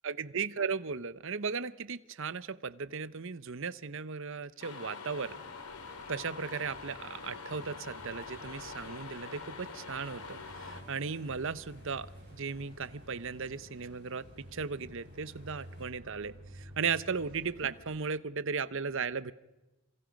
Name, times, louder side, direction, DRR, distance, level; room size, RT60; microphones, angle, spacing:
voice 1, 0.0-5.4 6.1-19.3, right 5 dB, 60° right, 16 dB, 0.8 m, -36 dB
sound 1, 4.6-10.8, left 4 dB, 85° left, 3.0 m, -45 dB
sound 2, 5.1-17.8, equal, 45° right, 7.3 m, -53 dB
sound 3, 8.1-15.9, left 1 dB, 50° left, 5.3 m, -61 dB
27.5 x 26.0 x 5.3 m, 1.1 s
head